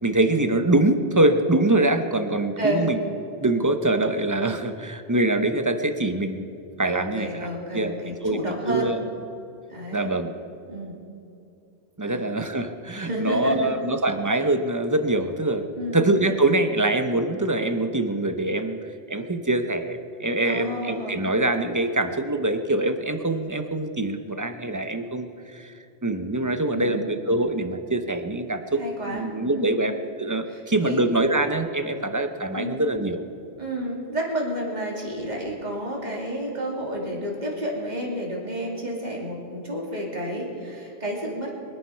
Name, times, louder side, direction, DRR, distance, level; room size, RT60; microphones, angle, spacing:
voice 1, 0.0-3.0 3.4-6.5 6.8-9.0 9.9-10.3 12.0-18.8 19.1-25.7 26.0-33.2, right 2 dB, 20° right, 7 dB, 0.8 m, -24 dB
voice 2, 2.6-2.9 6.9-8.9 9.7-10.1 10.7-11.0 12.0-12.3 13.0-13.7 15.8-16.1 20.4-21.2 26.7-27.1 28.8-29.8 30.5-31.0 32.6-32.8 33.6-41.5, equal, 40° right, -2 dB, 2.9 m, -31 dB
24.0 x 10.0 x 5.7 m, 2.6 s
omnidirectional pair, 1.2 m